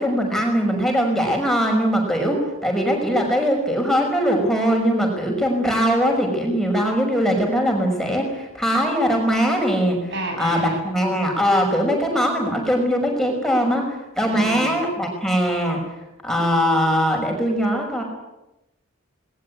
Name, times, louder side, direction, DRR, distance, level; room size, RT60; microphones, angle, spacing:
voice 1, 0.0-15.8 16.2-18.0, equal, ahead, 1 dB, 5.7 m, -21 dB
voice 2, 10.1-10.8 14.3-14.8, right 2 dB, 55° right, 3 dB, 7.6 m, -30 dB
20.5 x 20.0 x 9.7 m, 0.93 s
head